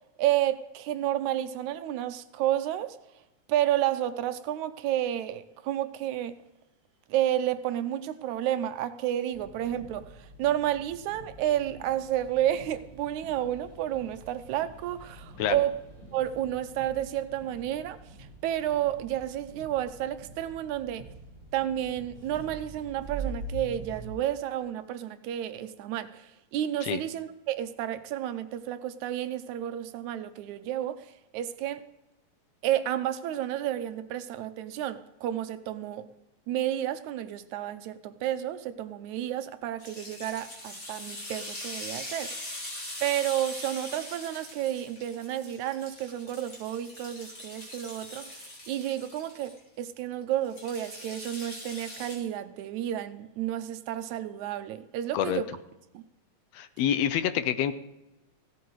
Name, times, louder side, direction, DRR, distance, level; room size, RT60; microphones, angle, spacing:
voice 1, 0.2-3.0 3.5-6.4 7.1-15.7 16.1-18.0 18.4-21.0 21.5-31.8 32.6-36.1 36.5-42.5 43.0-55.5 55.9-56.0, right 12 dB, 80° right, 2.0 m, -31 dB
sound 1, 9.3-24.1, right 2 dB, 25° right, 5.9 m, -45 dB
sound 2, 39.8-49.6 50.4-52.2, left 1 dB, 30° left, 4.5 m, -42 dB
voice 2, 56.5-57.7, left 10 dB, 75° left, 1.7 m, -27 dB
16.5 x 13.0 x 4.7 m
omnidirectional pair, 3.4 m